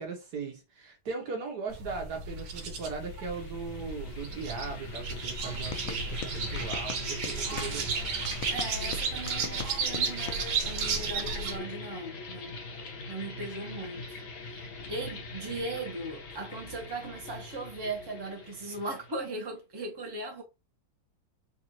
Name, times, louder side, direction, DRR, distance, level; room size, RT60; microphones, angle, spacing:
voice 1, 0.0-8.1 13.3-13.5, right 5 dB, 60° right, 1.4 m, -38 dB
sound 1, 1.7-11.6, right 5 dB, 75° right, 1.5 m, -34 dB
sound 2, 2.8-19.5, left 3 dB, 55° left, 1.2 m, -42 dB
sound 3, 5.5-7.7 8.2-10.4, left 7 dB, 85° left, 0.7 m, -41 dB
voice 2, 8.5-12.6 13.1-20.4, right 2 dB, 20° right, 0.8 m, -38 dB
4.0 x 2.6 x 2.9 m
omnidirectional pair, 2.1 m